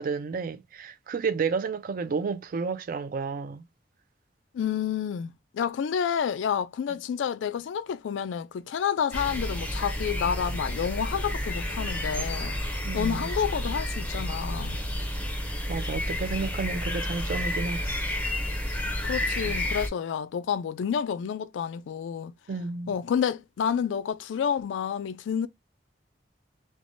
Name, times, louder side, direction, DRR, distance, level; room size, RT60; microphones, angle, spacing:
voice 1, 0.0-3.6 12.8-13.2 15.2-15.3 15.7-18.0 19.4-19.6 22.5-22.9, right 4 dB, 50° right, 0.4 m, -31 dB
voice 2, 4.5-12.6 12.9-14.8 19.0-22.3 22.9-25.5, left 7 dB, 85° left, 0.3 m, -29 dB
sound 1, 9.1-19.9, left 1 dB, 10° left, 0.5 m, -30 dB
3.2 x 2.1 x 2.5 m
head